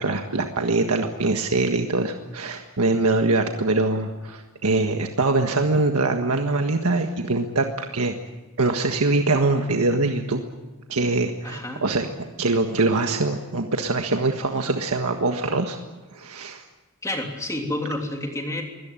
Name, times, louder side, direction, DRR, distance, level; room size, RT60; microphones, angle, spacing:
voice 1, 0.0-8.1 8.6-10.4 10.9-12.1 12.4-15.8 16.1-16.6, right 3 dB, 90° right, 4 dB, 1.6 m, -23 dB
voice 2, 11.4-11.8 17.0-18.6, left 1 dB, 15° left, 2 dB, 3.2 m, -29 dB
23.5 x 18.5 x 9.1 m, 1.2 s
head